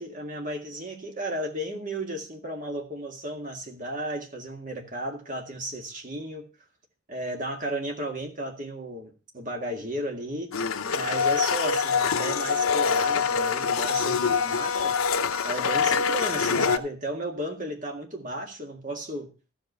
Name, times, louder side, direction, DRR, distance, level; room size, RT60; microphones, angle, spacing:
voice 1, 0.0-6.5 7.1-10.6 10.9-15.0 15.4-19.3, right 1 dB, 35° right, 2 dB, 1.9 m, -34 dB
Domestic sounds home sounds, 10.5-16.8, left 5 dB, 80° left, 0.8 m, -25 dB
14.0 x 5.2 x 6.7 m, 0.34 s
head